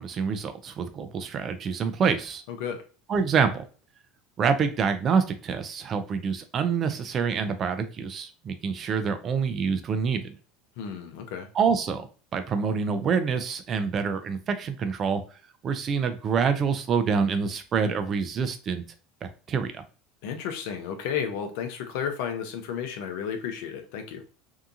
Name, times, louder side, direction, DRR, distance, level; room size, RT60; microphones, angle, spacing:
voice 1, 0.0-2.4 3.1-3.6 4.4-10.2 11.5-15.2 15.6-18.8 19.2-19.8, right 6 dB, 40° right, 8 dB, 0.4 m, -26 dB
voice 2, 10.8-11.5 20.2-24.2, left 7 dB, 65° left, 5 dB, 0.6 m, -32 dB
2.8 x 2.2 x 2.5 m, 0.37 s
hypercardioid pair, 75°, 0 cm